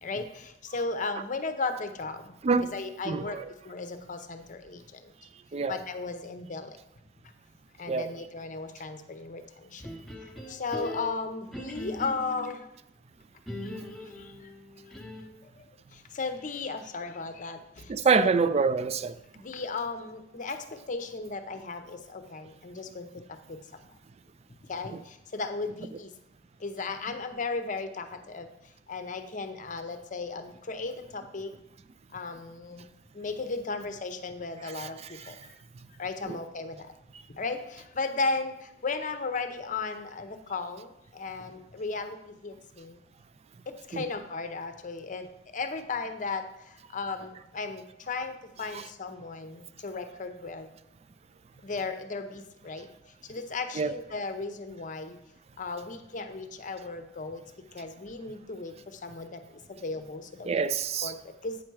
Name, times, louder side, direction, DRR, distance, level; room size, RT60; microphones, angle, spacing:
voice 1, 0.0-2.3 2.7-3.4 3.6-5.1 5.7-6.8 7.8-9.8 10.5-12.7 13.6-13.7 14.1-14.5 15.4-15.7 15.9-18.3 19.3-23.6 24.7-26.1 26.6-28.5 28.9-31.5 32.1-32.8 33.1-35.5 36.0-36.9 37.3-43.0 43.7-50.7 51.6-52.9 53.3-55.2 55.6-57.4 57.7-59.4 59.7-60.6 61.0-61.6, left 3 dB, 40° left, 0.7 m, -35 dB
voice 2, 3.1-3.4 5.5-5.8 7.9-8.1 17.9-19.2 34.8-34.9 36.3-36.4 43.9-44.0 48.7-48.8 53.8-54.0 60.4-61.1, right 5 dB, 35° right, 0.4 m, -26 dB
sound 1, 9.8-12.6 13.5-15.4, left 1 dB, ahead, 0.9 m, -40 dB
8.7 x 5.7 x 4.7 m
head